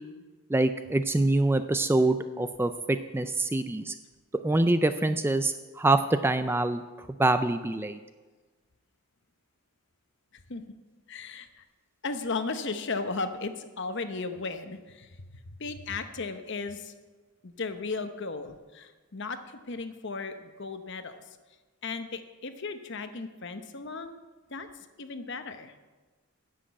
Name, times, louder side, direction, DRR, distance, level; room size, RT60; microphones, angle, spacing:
voice 1, 0.5-3.9 4.4-8.0, right 2 dB, 10° right, 10 dB, 0.3 m, -25 dB
voice 2, 11.1-11.6 12.0-15.2 15.6-16.9 17.4-21.2 21.8-24.2 24.5-24.7 25.0-25.7, left 4 dB, 55° left, 9 dB, 0.9 m, -35 dB
10.0 x 7.6 x 8.6 m, 1.3 s
head